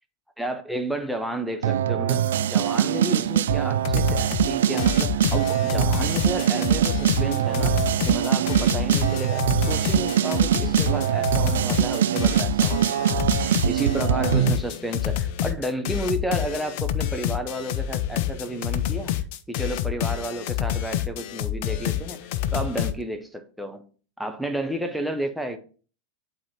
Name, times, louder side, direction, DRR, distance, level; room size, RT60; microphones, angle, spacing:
voice 1, 0.4-13.2 13.7-23.8 24.2-25.6, right 1 dB, ahead, 0.8 m, -32 dB
sound 1, 1.6-14.6, right 10 dB, 60° right, 0.3 m, -23 dB
sound 2, 3.5-3.6 3.9-4.5 4.8-22.9, left 11 dB, 50° left, 0.5 m, -28 dB
9.9 x 4.3 x 2.9 m
figure-of-eight pair, 90°, 0 cm